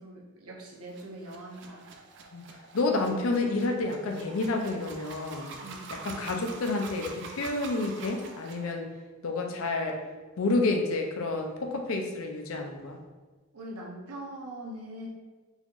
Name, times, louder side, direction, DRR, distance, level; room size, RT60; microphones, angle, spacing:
voice 1, 0.0-1.9 2.9-3.0 5.6-5.9 13.5-15.1, right 1 dB, 90° right, -2 dB, 0.8 m, -42 dB
sound 1, 0.9-8.7, right 4 dB, 55° right, 0.3 m, -45 dB
voice 2, 2.7-5.5 6.0-8.9 9.2-10.0 10.4-13.0, left 2 dB, 70° left, 3 dB, 0.5 m, -29 dB
4.0 x 2.9 x 2.4 m, 1.3 s
head